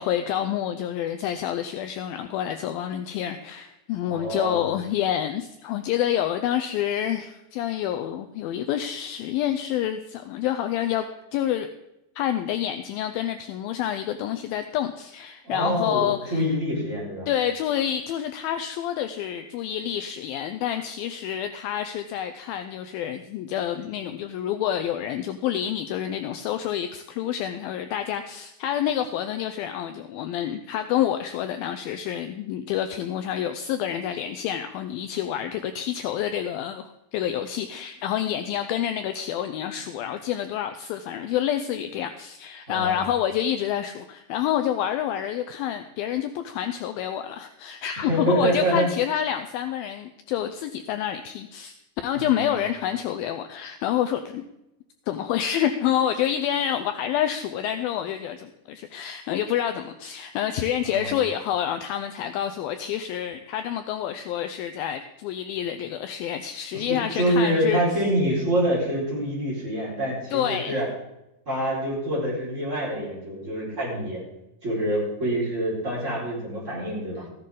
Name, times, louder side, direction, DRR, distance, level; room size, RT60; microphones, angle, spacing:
voice 1, 0.0-11.1 11.3-11.7 12.2-16.5 17.3-51.8 52.0-54.4 55.1-67.8 70.3-70.8, left 10 dB, 85° left, 8 dB, 2.1 m, -28 dB
voice 2, 4.1-4.6 15.4-17.3 42.7-43.0 48.1-48.9 52.1-52.5 60.8-61.2 66.7-70.8 71.5-74.2 74.6-77.2, right 1 dB, 15° right, -7 dB, 4.6 m, -26 dB
14.5 x 10.5 x 3.8 m, 0.89 s
omnidirectional pair, 4.8 m